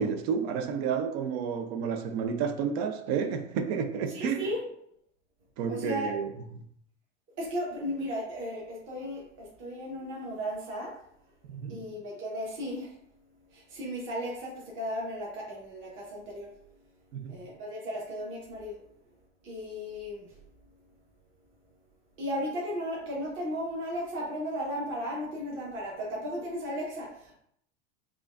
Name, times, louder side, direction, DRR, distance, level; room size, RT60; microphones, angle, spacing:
voice 1, 0.0-4.4 5.6-6.6 11.5-11.9 17.1-17.4, right 6 dB, 60° right, 0.6 m, -31 dB
voice 2, 4.1-4.6 5.7-6.1 7.4-10.9 11.7-12.9 13.5-16.5 17.3-18.8 19.4-20.3 22.2-27.3, equal, 35° right, 1.2 m, -35 dB
4.9 x 2.4 x 2.5 m
supercardioid pair, 120°, 35 cm